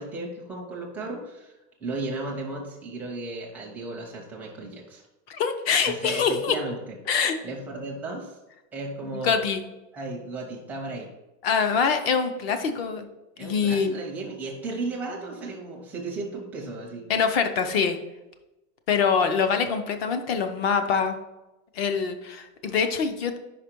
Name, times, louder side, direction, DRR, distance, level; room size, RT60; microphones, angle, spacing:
voice 1, 0.0-5.0 5.8-7.0 7.4-8.4 8.7-9.4 9.9-11.1 13.4-17.0, right 2 dB, 5° right, -3 dB, 0.5 m, -35 dB
voice 2, 5.3-6.5 7.1-7.4 9.1-9.6 11.4-13.1 13.4-14.0 17.1-18.0 18.9-21.2 21.8-23.4, left 6 dB, 45° left, 8 dB, 0.7 m, -24 dB
5.0 x 4.9 x 4.4 m, 0.99 s
supercardioid pair, 170°, 41 cm